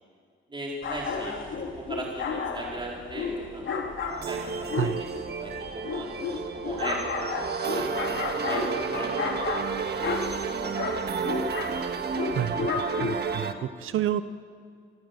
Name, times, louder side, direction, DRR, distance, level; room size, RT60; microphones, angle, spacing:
voice 1, 0.5-1.4 1.8-3.6 4.2-5.1 5.4-7.4 7.7-11.2 11.5-11.6, right 2 dB, 25° right, -3 dB, 4.2 m, -38 dB
sound 1, 0.8-13.4, left 4 dB, 75° left, 2.6 m, -32 dB
sound 2, 4.1-13.5, right 5 dB, 55° right, 1.5 m, -32 dB
voice 2, 12.3-14.2, right 11 dB, 85° right, 12 dB, 0.7 m, -30 dB
27.5 x 15.5 x 8.0 m, 2.1 s
cardioid pair, 120°, 20 cm